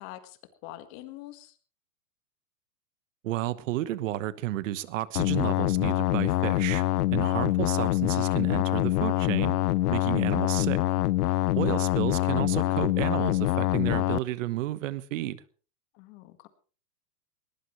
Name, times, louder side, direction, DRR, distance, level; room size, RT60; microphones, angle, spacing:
voice 1, 0.0-1.6 11.5-11.7 15.9-16.5, left 15 dB, 35° left, 1.7 m, -45 dB
voice 2, 3.2-6.8 7.1-9.6 9.9-10.8 11.6-15.4, right 14 dB, 50° right, 1.2 m, -31 dB
sound 1, 5.2-14.2, left 16 dB, 65° left, 0.6 m, -25 dB
20.0 x 18.5 x 3.2 m
supercardioid pair, 155°, 49 cm